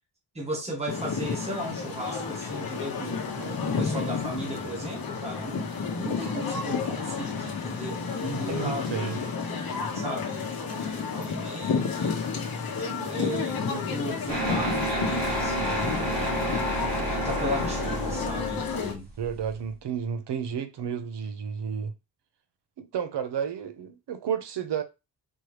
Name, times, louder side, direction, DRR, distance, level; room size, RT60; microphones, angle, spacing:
voice 1, 0.3-9.1 9.9-16.3 17.1-19.1, equal, 15° right, 1.3 m, -36 dB
sound 1, 0.9-18.9, left 5 dB, 55° left, 1.0 m, -31 dB
voice 2, 8.3-9.2 10.9-11.2 19.2-21.9 22.8-24.8, right 7 dB, 70° right, 0.8 m, -32 dB
sound 2, 14.3-19.7, right 1 dB, 50° right, 1.9 m, -30 dB
4.4 x 3.0 x 3.2 m
wide cardioid pair, 165°, 43 cm